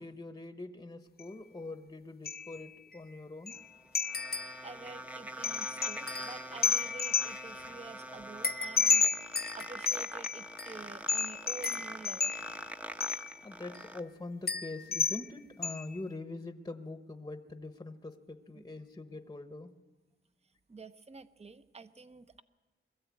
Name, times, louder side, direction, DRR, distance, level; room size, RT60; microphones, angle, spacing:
voice 1, 0.0-3.6 13.4-19.7, left 2 dB, 20° left, 9 dB, 1.0 m, -43 dB
sound 1, 1.2-1.3 2.3-2.7 2.9-3.0 3.5-3.6 4.0-4.7 5.4-7.6 8.4-10.8 11.1-12.7 13.0-13.3 13.7-13.8 14.5-15.3 15.6-16.0, left 5 dB, 50° left, 0.7 m, -32 dB
sound 2, 3.5-14.0, right 1 dB, 5° right, 0.8 m, -44 dB
voice 2, 4.6-9.1 9.5-12.3 18.6-18.7 20.7-22.4, right 4 dB, 30° right, 12 dB, 0.8 m, -49 dB
22.0 x 14.0 x 8.4 m, 1.2 s
wide cardioid pair, 95°, 21 cm